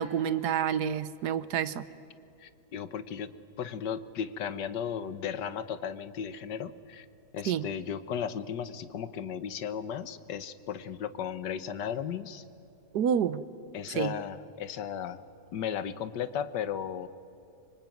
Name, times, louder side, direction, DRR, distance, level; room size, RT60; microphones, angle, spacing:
voice 1, 0.0-1.9 7.4-7.7 12.9-13.4 13.9-14.1, right 8 dB, 70° right, 15 dB, 1.4 m, -28 dB
voice 2, 2.4-3.3 3.6-7.0 7.3-12.4 13.7-15.2 15.5-17.1, left 8 dB, 80° left, 13 dB, 1.7 m, -35 dB
25.0 x 24.0 x 9.3 m, 2.7 s
omnidirectional pair, 1.8 m